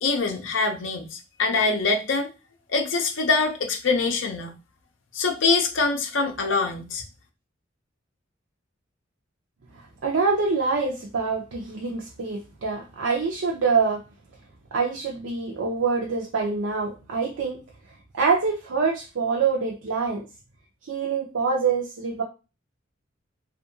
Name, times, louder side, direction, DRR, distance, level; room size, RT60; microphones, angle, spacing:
voice 1, 0.0-2.3 2.7-4.6 5.1-7.0, left 4 dB, 65° left, 3 dB, 0.6 m, -24 dB
voice 2, 9.7-14.0 14.7-17.6 17.9-20.2 20.8-22.2, right 4 dB, 70° right, 0 dB, 0.5 m, -25 dB
2.7 x 2.4 x 2.6 m, 0.30 s
head